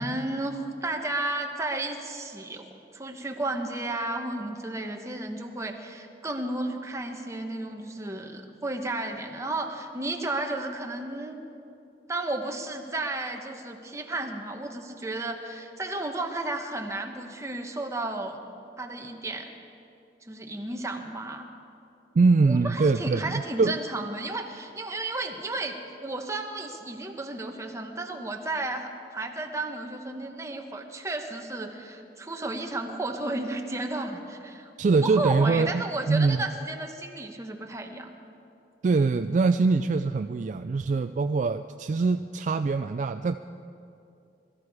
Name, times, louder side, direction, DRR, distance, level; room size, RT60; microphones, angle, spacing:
voice 1, 0.0-11.4 12.1-18.4 18.8-19.5 20.2-21.5 22.4-34.7 35.0-38.1, right 2 dB, 15° right, 3 dB, 1.1 m, -33 dB
voice 2, 22.1-23.8 34.8-36.4 38.8-43.4, right 4 dB, 45° right, 9 dB, 0.3 m, -23 dB
21.5 x 13.5 x 4.9 m, 2.6 s
head